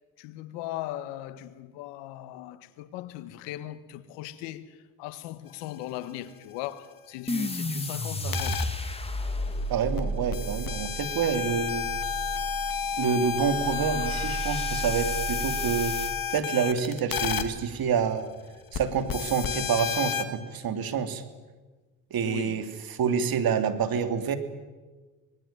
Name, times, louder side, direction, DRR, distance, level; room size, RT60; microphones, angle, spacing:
voice 1, 0.2-8.6 22.2-22.6, left 14 dB, 80° left, 1.7 m, -38 dB
sound 1, 7.3-16.2, right 1 dB, 15° left, 3.3 m, -33 dB
sound 2, 8.3-8.7 10.0-10.1 10.3-17.4 18.7-18.8 19.1-20.2, left 8 dB, 55° left, 2.6 m, -31 dB
voice 2, 9.7-11.9 13.0-16.0 16.3-18.3 18.7-21.2 22.1-22.7 23.0-24.4, right 6 dB, 55° right, 3.1 m, -27 dB
25.5 x 20.0 x 9.1 m
supercardioid pair, 65°, 42 cm